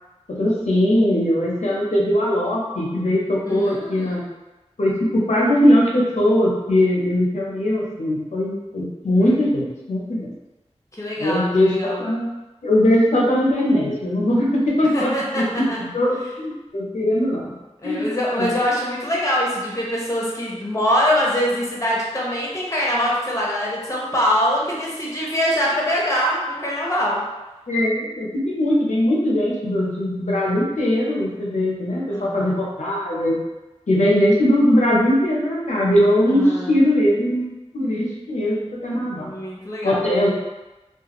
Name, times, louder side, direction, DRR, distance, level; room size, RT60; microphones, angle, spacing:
voice 1, 0.3-4.2 4.8-10.3 11.2-12.3 12.6-17.5 17.8-18.1 18.4-18.5 27.7-33.4 33.9-39.3 39.8-40.3, left 1 dB, 80° left, -4 dB, 0.7 m, -20 dB
voice 2, 3.4-4.3 9.1-9.3 10.9-12.0 14.9-15.8 17.8-27.2 32.1-32.6 36.3-36.8 39.1-40.0, equal, 25° left, -4 dB, 0.9 m, -23 dB
2.4 x 2.3 x 2.9 m, 1.1 s
wide cardioid pair, 45°, 12 cm